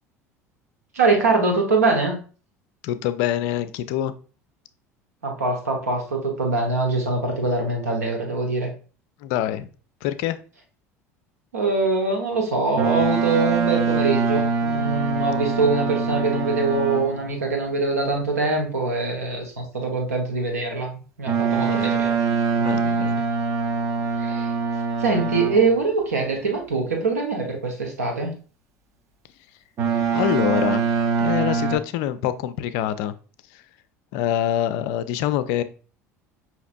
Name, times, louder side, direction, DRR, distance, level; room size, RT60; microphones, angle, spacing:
voice 1, 0.9-2.2 5.2-8.7 11.5-22.2 24.1-24.5 25.0-28.3, right 3 dB, 75° right, 2 dB, 1.0 m, -23 dB
voice 2, 2.8-4.1 9.2-9.7 10.0-10.4 21.6-22.0 22.6-23.2 30.1-33.1 33.5-33.6 34.1-35.6, left 11 dB, 55° left, 13 dB, 0.4 m, -25 dB
Boat Water vehicle, 12.8-17.3 21.3-25.8 29.8-31.8, right 5 dB, 40° right, 0.8 m, -23 dB
5.7 x 2.9 x 2.5 m, 0.37 s
figure-of-eight pair, 65°, 8 cm